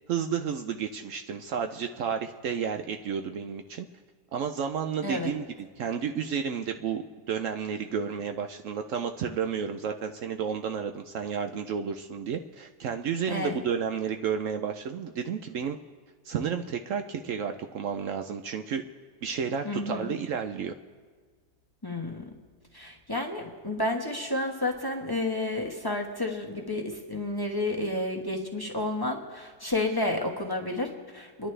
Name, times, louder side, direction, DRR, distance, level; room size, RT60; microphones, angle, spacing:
voice 1, 0.1-3.9 4.3-5.4 5.8-15.8 16.2-18.8 19.2-20.7, right 7 dB, 65° right, 6 dB, 0.9 m, -31 dB
voice 2, 13.3-13.6 19.6-20.1 21.8-22.2 22.7-31.5, left 2 dB, 15° left, 1 dB, 1.1 m, -31 dB
30.0 x 11.0 x 3.3 m, 1.5 s
omnidirectional pair, 1.5 m